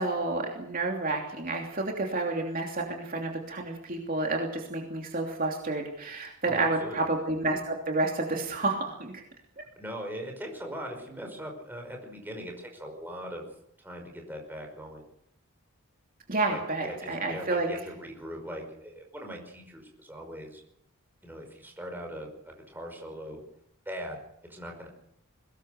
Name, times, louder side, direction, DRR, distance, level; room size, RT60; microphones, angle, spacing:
voice 1, 0.0-9.2 16.3-17.7, right 2 dB, 40° right, 1 dB, 3.0 m, -30 dB
voice 2, 6.4-7.1 9.8-13.5 13.8-15.1 16.5-20.6 21.2-23.4 23.9-24.2 24.5-24.9, equal, 10° right, 2 dB, 5.3 m, -40 dB
22.5 x 20.0 x 6.6 m, 0.75 s
head